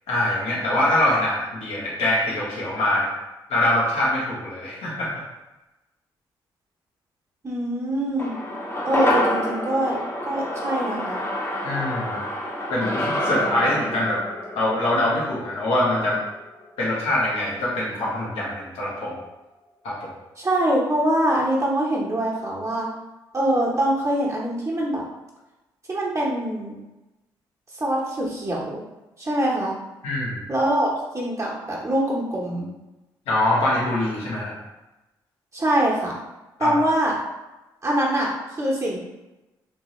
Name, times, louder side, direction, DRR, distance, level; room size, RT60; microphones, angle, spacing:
voice 1, 0.1-3.1 3.5-5.2 11.6-12.2 12.7-14.2 14.5-16.2 16.8-19.2 19.8-20.1 30.0-30.5 33.3-34.5 36.6-36.7, left 1 dB, 80° left, -6 dB, 1.2 m, -23 dB
voice 2, 7.4-8.3 8.8-10.0 10.3-11.2 20.4-22.9 23.3-25.0 25.9-26.8 27.7-28.8 29.2-29.7 30.5-32.7 35.5-36.2 36.6-37.1 37.8-39.0, right 1 dB, 30° right, -5 dB, 1.1 m, -24 dB
sound 1, 8.2-16.7 17.0-17.1, left 1 dB, 25° left, 0.9 m, -28 dB
3.5 x 2.7 x 3.1 m, 1.0 s
supercardioid pair, 50°, 10 cm